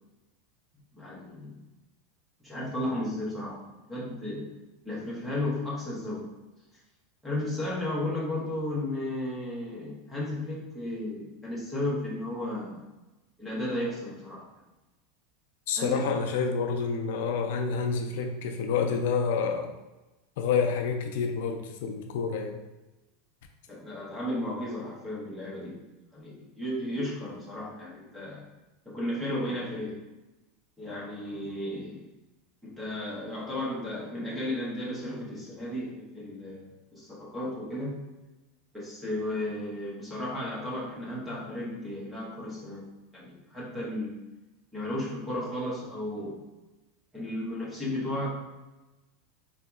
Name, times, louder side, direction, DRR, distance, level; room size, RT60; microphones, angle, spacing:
voice 1, 0.9-1.6 2.4-3.6 3.9-4.5 4.8-6.3 7.2-12.8 13.4-14.5 15.8-16.1 23.7-25.8 26.1-28.5 28.8-30.0 30.8-32.0 32.6-38.0 38.7-42.8 43.1-44.2 44.7-46.4 47.1-48.3, left 1 dB, 5° right, -7 dB, 0.8 m, -34 dB
voice 2, 15.7-19.7 20.4-22.6, left 5 dB, 65° left, 3 dB, 0.3 m, -28 dB
3.9 x 2.7 x 2.3 m, 1.1 s
supercardioid pair, 175°, 0 cm